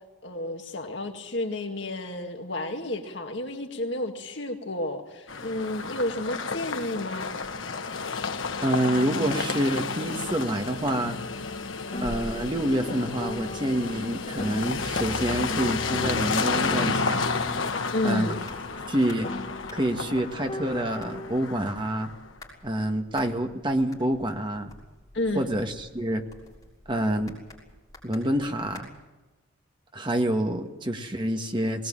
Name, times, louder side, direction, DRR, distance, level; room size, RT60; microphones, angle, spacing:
voice 1, 0.2-7.3 17.9-18.4 25.1-25.5, left 1 dB, 60° left, 3 dB, 2.0 m, -31 dB
sound 1, 5.3-22.3, left 4 dB, 80° left, 1.3 m, -31 dB
voice 2, 8.6-11.2 12.0-17.2 18.0-18.3 18.9-19.3 19.7-22.1 22.6-24.7 25.3-26.3 26.9-27.4 28.0-28.9 29.9-31.9, right 1 dB, 25° right, 4 dB, 1.7 m, -27 dB
Piano, 11.9-16.4 16.8-21.4, left 1 dB, 35° left, 1.3 m, -40 dB
sound 2, 16.6-28.8, left 1 dB, 20° left, 6.5 m, -49 dB
20.5 x 19.0 x 8.9 m, 1.1 s
head